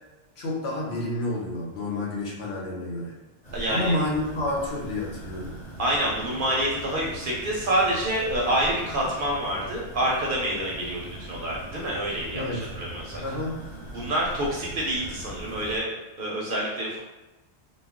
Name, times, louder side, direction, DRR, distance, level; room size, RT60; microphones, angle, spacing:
voice 1, 0.4-3.1 3.7-5.6 12.3-12.7 13.2-13.6, left 1 dB, 65° left, -3 dB, 0.9 m, -29 dB
sound 1, 3.4-15.8, right 1 dB, 40° left, 1.0 m, -41 dB
voice 2, 3.5-3.9 5.8-13.2 13.9-15.9 16.2-17.0, right 1 dB, 60° right, -3 dB, 0.6 m, -27 dB
2.3 x 2.0 x 3.5 m, 1.1 s
omnidirectional pair, 1.2 m